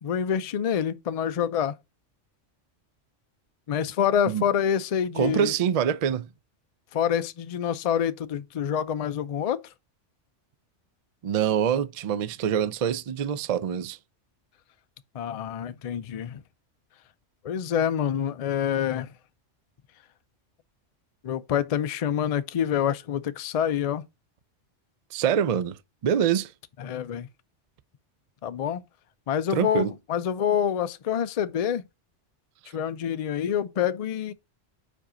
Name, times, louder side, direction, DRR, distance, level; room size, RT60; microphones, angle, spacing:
voice 1, 0.0-1.7 3.7-5.5 6.9-9.6 15.1-16.4 17.4-19.1 21.2-24.0 26.8-27.3 28.4-28.8 29.3-31.8 32.7-34.3, left 9 dB, 60° left, 0.4 m, -27 dB
voice 2, 5.2-6.3 11.2-14.0 25.1-25.8 26.0-26.5 29.5-29.9, right 8 dB, 65° right, 0.3 m, -25 dB
4.8 x 4.5 x 5.0 m
omnidirectional pair, 1.2 m